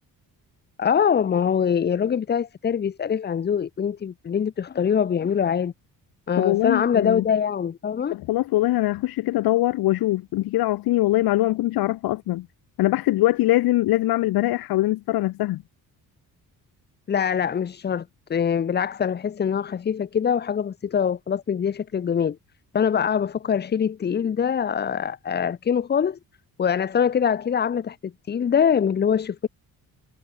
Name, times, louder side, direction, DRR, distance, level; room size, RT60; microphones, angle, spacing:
voice 1, 0.8-5.7 6.3-8.2 17.1-22.4 22.7-26.2 26.6-29.5, left 7 dB, 30° left, 0.7 m, -23 dB
voice 2, 6.4-7.2 8.1-12.5 12.8-15.6, left 16 dB, 80° left, 0.8 m, -22 dB
cardioid pair, 150°, 36 cm